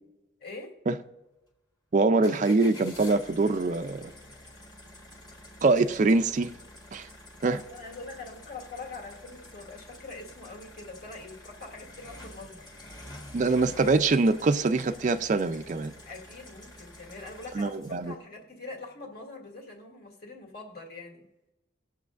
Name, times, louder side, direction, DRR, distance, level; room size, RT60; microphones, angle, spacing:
voice 1, 0.4-0.8 7.4-12.7 16.0-21.3, left 3 dB, 55° left, 2.3 m, -43 dB
voice 2, 1.9-4.1 5.6-6.5 6.9-7.1 7.4-7.6 13.3-15.9 17.6-18.1, right 3 dB, 40° right, 0.4 m, -24 dB
sound 1, 2.2-18.1, left 1 dB, 25° left, 1.9 m, -48 dB
20.0 x 7.3 x 2.5 m
head